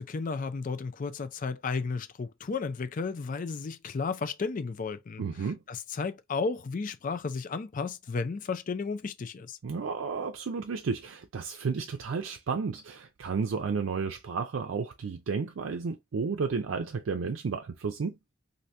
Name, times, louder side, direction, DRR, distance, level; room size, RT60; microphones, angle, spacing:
voice 1, 0.0-5.2 5.7-9.6, left 4 dB, 45° left, 0.4 m, -33 dB
voice 2, 5.2-5.6 9.6-18.2, right 5 dB, 75° right, 0.4 m, -32 dB
2.8 x 2.6 x 3.2 m
head